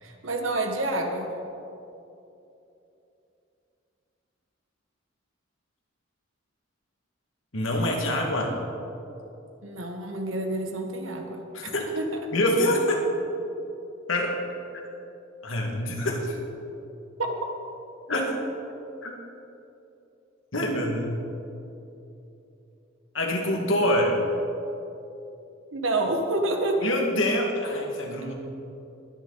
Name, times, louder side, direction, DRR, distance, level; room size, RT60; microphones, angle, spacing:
voice 1, 0.0-1.3 9.6-12.1 17.2-17.4 25.7-26.9, right 2 dB, 85° right, 4 dB, 1.6 m, -28 dB
voice 2, 7.5-8.5 11.5-11.8 12.3-13.0 14.1-14.4 15.4-16.4 18.1-18.4 19.0-19.1 20.5-21.2 23.1-24.2 26.8-28.3, left 1 dB, 75° left, 0 dB, 2.2 m, -25 dB
21.5 x 9.7 x 4.2 m, 2.8 s
head